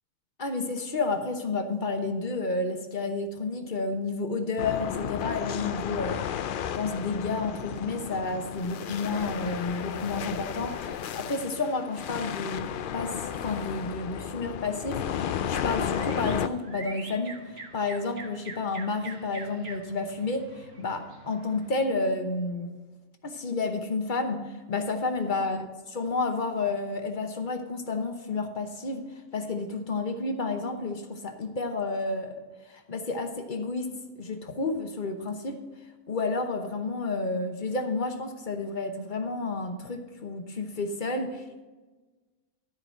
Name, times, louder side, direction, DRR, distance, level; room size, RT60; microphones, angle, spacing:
voice 1, 0.4-6.4 6.7-12.7 12.9-22.7 23.2-25.7 25.9-32.4 32.6-35.6 36.1-41.6, left 3 dB, 40° left, 6 dB, 1.0 m, -31 dB
sound 1, 4.6-16.5, left 9 dB, 75° left, 0.4 m, -33 dB
sound 2, 15.2-21.8, right 3 dB, 50° right, 1.4 m, -45 dB
13.5 x 4.8 x 6.6 m, 1.3 s
omnidirectional pair, 1.4 m